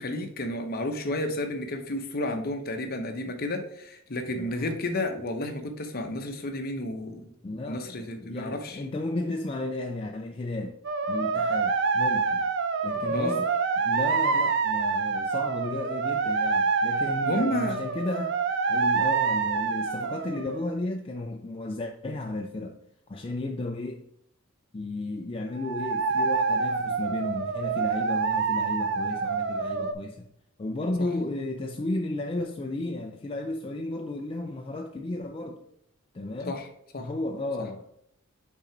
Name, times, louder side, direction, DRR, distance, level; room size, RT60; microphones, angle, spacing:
voice 1, 0.0-8.8 13.1-13.4 17.2-17.8 31.0-31.1 36.5-36.7 36.9-37.1, left 1 dB, 50° left, 0.9 m, -32 dB
voice 2, 4.3-4.7 7.4-10.8 11.1-12.5 12.8-13.5 13.8-18.4 18.7-22.8 23.1-24.0 24.7-30.3 30.6-35.6 36.1-36.6 37.0-37.9, left 2 dB, 25° left, 0.4 m, -33 dB
sound 1, 10.8-20.7 25.6-29.9, right 5 dB, 60° right, 0.5 m, -27 dB
6.0 x 3.8 x 4.5 m
head